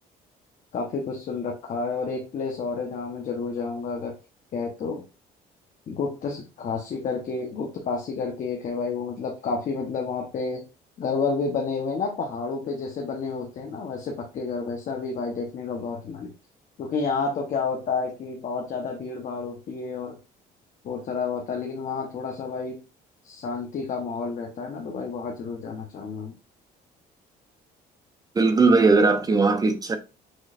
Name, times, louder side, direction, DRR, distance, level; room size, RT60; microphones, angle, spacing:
voice 1, 0.7-4.2 4.5-5.0 5.9-10.6 11.0-16.3 16.8-20.2 20.8-22.8 23.2-26.3, left 4 dB, 50° left, 1.0 m, -30 dB
voice 2, 28.4-30.0, right 3 dB, 20° right, 0.6 m, -19 dB
6.3 x 3.1 x 2.5 m
cardioid pair, 110°, 17 cm